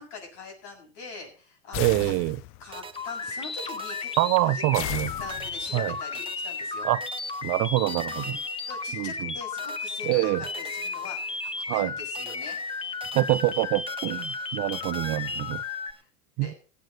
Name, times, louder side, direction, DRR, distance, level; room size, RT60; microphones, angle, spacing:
voice 1, 0.0-2.1 2.6-4.1 4.4-4.6 5.2-6.9 8.1-8.4 8.7-12.9 15.3-15.5 15.9-16.1 16.4-16.5, left 4 dB, 60° left, 7.4 m, -43 dB
sound 1, 1.7-2.7 4.7-5.8, left 17 dB, 35° left, 0.5 m, -35 dB
voice 2, 1.8-2.4 4.2-5.1 5.7-5.9 6.8-7.0 7.4-8.4 8.9-9.3 10.0-10.4 11.7-11.9 13.1-15.6 16.4-16.5, right 19 dB, 40° right, 0.6 m, -25 dB
sound 2, 2.7-5.0 5.3-9.3 9.6-11.9 12.1-16.0, right 6 dB, 15° right, 0.9 m, -46 dB
sound 3, 2.9-15.9, left 4 dB, 15° left, 0.8 m, -34 dB
17.0 x 8.3 x 4.5 m
hypercardioid pair, 115°, 38 cm